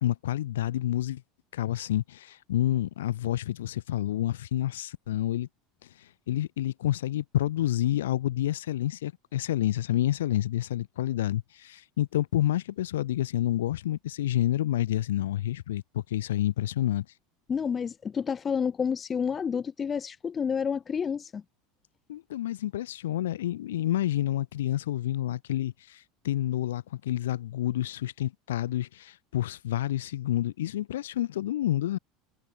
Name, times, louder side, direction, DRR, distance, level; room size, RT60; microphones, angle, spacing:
voice 1, 0.0-1.2 1.5-5.5 6.3-17.1 22.1-32.0, left 13 dB, 80° left, 1.8 m, -29 dB
voice 2, 17.5-21.4, left 6 dB, 30° left, 0.7 m, -29 dB
hypercardioid pair, 85°, 0 cm